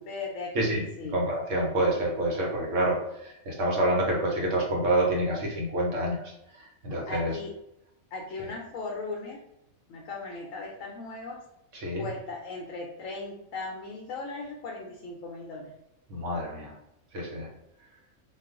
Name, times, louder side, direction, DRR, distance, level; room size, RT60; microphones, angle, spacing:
voice 1, 0.0-1.2 7.1-7.5 8.1-9.4 9.9-11.4 12.0-15.7, left 3 dB, 70° left, -1 dB, 0.9 m, -37 dB
voice 2, 1.1-3.0 3.5-6.2 6.8-7.3 11.7-12.1 16.1-16.7 17.1-17.5, right 1 dB, 65° right, -1 dB, 1.0 m, -27 dB
2.4 x 2.3 x 3.5 m, 0.84 s
omnidirectional pair, 1.5 m